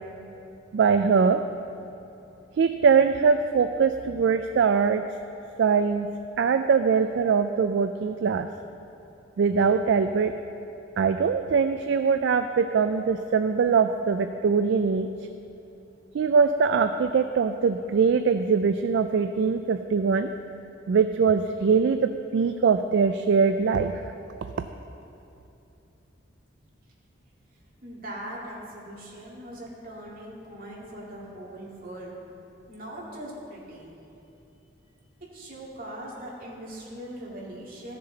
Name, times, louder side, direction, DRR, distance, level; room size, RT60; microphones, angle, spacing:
voice 1, 0.7-1.4 2.6-5.0 5.6-6.1 6.4-8.5 9.4-10.3 11.0-15.1 16.1-20.3 20.9-23.9 24.6-24.7, right 5 dB, 65° right, 8 dB, 0.3 m, -22 dB
voice 2, 27.8-32.1 32.7-33.9 35.3-38.0, right 1 dB, 50° right, -5 dB, 2.2 m, -40 dB
14.5 x 6.7 x 3.9 m, 2.8 s
head